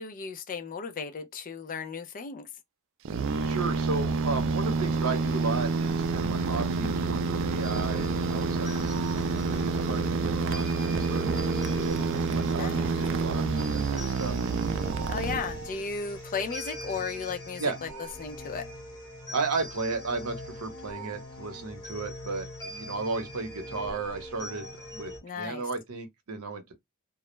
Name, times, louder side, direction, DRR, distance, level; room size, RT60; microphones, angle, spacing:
voice 1, 0.0-2.5 12.5-12.9 15.1-17.9 18.2-18.6 25.2-25.6, left 5 dB, 40° left, 0.4 m, -35 dB
sound 1, 3.0-15.9, right 4 dB, 60° right, 0.4 m, -28 dB
voice 2, 3.4-13.5 13.7-14.3 17.6-17.8 19.3-26.7, right 4 dB, 80° right, 0.8 m, -34 dB
sound 2, 7.6-25.2, equal, 20° left, 1.2 m, -42 dB
2.3 x 2.0 x 3.0 m
head